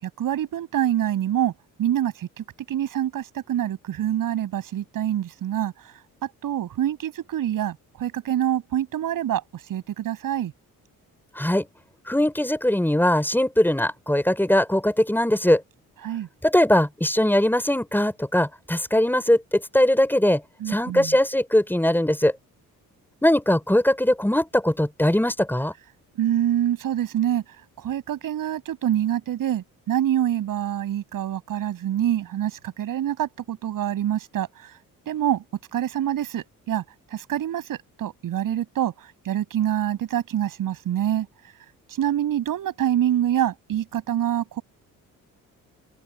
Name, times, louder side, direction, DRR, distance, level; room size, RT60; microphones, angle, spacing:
voice 1, 0.0-1.5 1.8-5.7 6.4-9.4 9.7-10.5 16.0-16.3 20.6-21.1 26.2-27.4 27.8-34.7 35.1-35.4 35.7-36.8 37.1-41.3 41.9-44.6, right 11 dB, 75° right, 7.8 m, -26 dB
voice 2, 11.4-11.7 12.1-15.6 16.4-20.4 20.7-22.3 23.2-25.7, left 1 dB, 5° left, 5.5 m, -21 dB
open air
cardioid pair, 95°, 33 cm